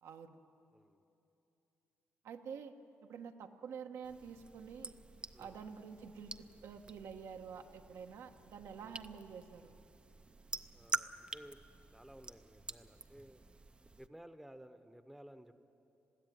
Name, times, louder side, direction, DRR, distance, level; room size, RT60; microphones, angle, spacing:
voice 1, 0.0-0.4 2.2-2.7 3.1-5.0 5.4-9.8, right 6 dB, 80° right, 4 dB, 1.2 m, -48 dB
voice 2, 0.7-1.0 5.3-5.6 8.8-9.0 10.7-11.6 11.9-13.4 14.0-15.6, right 1 dB, 5° right, 9 dB, 0.8 m, -56 dB
sound 1, 4.0-14.1, right 3 dB, 20° right, 0.5 m, -47 dB
21.5 x 15.5 x 9.5 m, 2.9 s
cardioid pair, 125°, 5 cm